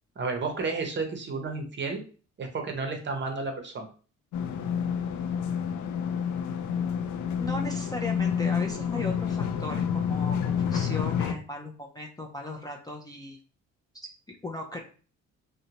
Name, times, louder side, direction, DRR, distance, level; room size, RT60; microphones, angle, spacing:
voice 1, 0.2-2.0 2.4-3.9, right 4 dB, 40° right, 4 dB, 0.7 m, -32 dB
sound 1, 4.3-11.3, left 7 dB, 75° left, 0.4 m, -29 dB
voice 2, 7.4-13.4 13.9-14.8, left 1 dB, 15° left, 0 dB, 0.4 m, -37 dB
2.6 x 2.1 x 2.8 m, 0.38 s
cardioid pair, 90°, 30 cm